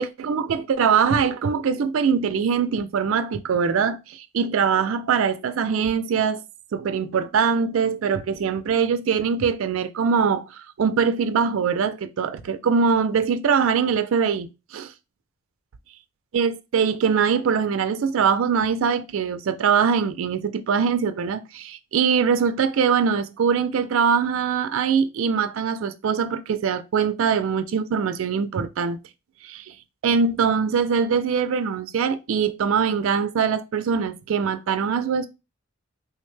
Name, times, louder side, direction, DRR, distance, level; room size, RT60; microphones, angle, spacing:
voice 1, 0.0-6.4 6.7-14.9 16.3-29.0 29.4-29.8 30.0-35.3, right 6 dB, 75° right, 0.4 m, -22 dB
3.4 x 2.1 x 3.1 m
head